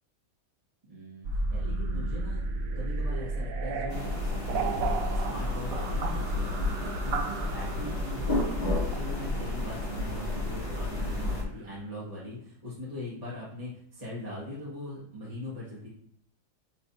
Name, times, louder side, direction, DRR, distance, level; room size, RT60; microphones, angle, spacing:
voice 1, 0.9-2.4 2.7-8.3 8.7-15.9, left 1 dB, 20° right, -8 dB, 2.1 m, -41 dB
sound 1, 1.2-11.3, right 3 dB, 70° right, 0.8 m, -34 dB
sound 2, 3.9-11.4, left 2 dB, 25° left, 1.9 m, -31 dB
9.6 x 4.1 x 2.8 m, 0.64 s
omnidirectional pair, 2.0 m